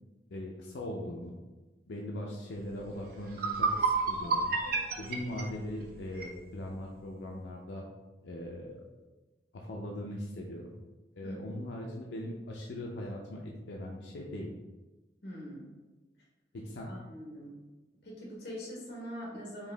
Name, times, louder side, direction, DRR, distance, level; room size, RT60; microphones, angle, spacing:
voice 1, 0.3-1.3 1.9-4.5 5.0-7.9 8.2-8.9 9.5-10.7 11.1-14.5 16.5-17.0, left 1 dB, 85° left, -1 dB, 0.5 m, -40 dB
sound 1, 2.8-2.9 3.3-6.4, right 4 dB, 55° right, 0.6 m, -30 dB
voice 2, 11.2-11.6 15.2-15.7 16.9-17.6 18.0-19.7, equal, 70° left, -3 dB, 1.1 m, -43 dB
4.6 x 2.7 x 3.3 m, 1.1 s
head